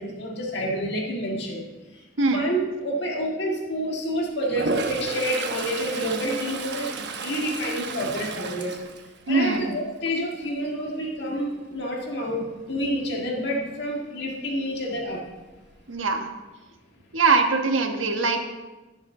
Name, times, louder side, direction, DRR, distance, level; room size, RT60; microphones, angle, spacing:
voice 1, 0.0-1.6 2.3-8.8 9.3-15.2, equal, 60° left, -1 dB, 1.8 m, -28 dB
Toilet flush, 4.5-9.7 10.1-10.4 14.9-15.0 15.3-16.0, right 3 dB, 60° right, 1.0 m, -32 dB
voice 2, 9.3-9.7 15.9-16.3 17.1-18.4, right 4 dB, 85° right, 4 dB, 1.3 m, -22 dB
16.5 x 7.2 x 3.8 m, 1.2 s
head